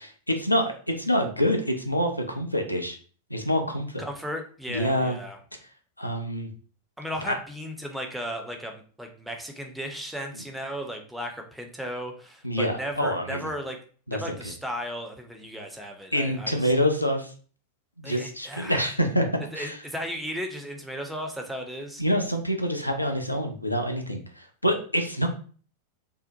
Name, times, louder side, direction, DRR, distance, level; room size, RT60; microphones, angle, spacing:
voice 1, 0.0-3.0 3.3-4.0 4.7-5.2 6.0-6.5 7.3-7.4 12.4-13.5 14.1-14.4 16.1-17.3 18.0-19.8 22.0-25.3, equal, 85° left, 4 dB, 0.4 m, -26 dB
voice 2, 4.0-5.4 7.0-13.8 14.1-16.7 18.0-18.9 19.5-22.0, equal, 5° right, 3 dB, 0.5 m, -35 dB
2.7 x 2.0 x 2.7 m, 0.42 s
figure-of-eight pair, 90°, 0 cm